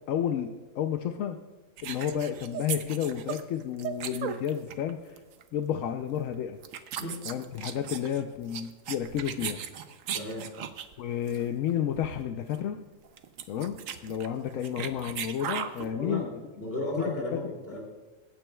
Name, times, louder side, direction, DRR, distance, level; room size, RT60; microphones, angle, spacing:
voice 1, 0.1-1.4 1.8-5.2 5.5-6.6 7.3-9.6 11.0-12.8 13.5-16.4 16.9-17.4, left 9 dB, 85° left, 6 dB, 1.0 m, -31 dB
sound 1, 1.8-4.9 5.2-5.4 6.2-6.3 6.6-10.9 11.3-11.4 11.7-11.8 12.0-12.2 12.5-12.6 13.0-15.9, right 9 dB, 90° right, 1.1 m, -37 dB
voice 2, 10.1-10.5 15.9-16.3 16.6-17.8, left 1 dB, 45° left, -1 dB, 3.0 m, -34 dB
22.5 x 9.1 x 2.3 m, 1.2 s
omnidirectional pair, 1.3 m